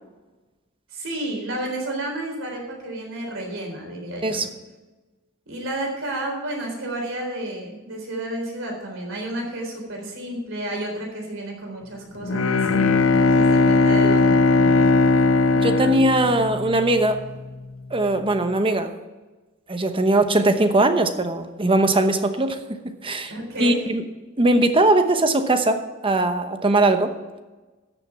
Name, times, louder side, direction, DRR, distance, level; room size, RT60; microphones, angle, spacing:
voice 1, 0.9-4.4 5.5-14.9 23.3-23.8, right 1 dB, 70° right, 1 dB, 3.9 m, -31 dB
Bowed string instrument, 12.2-17.1, left 3 dB, 75° left, 0.6 m, -18 dB
voice 2, 15.5-17.2 17.9-18.9 19.7-22.6 23.0-23.3 23.6-24.0 24.4-27.1, right 2 dB, 25° right, 8 dB, 1.0 m, -20 dB
13.5 x 6.8 x 5.8 m, 1.2 s
head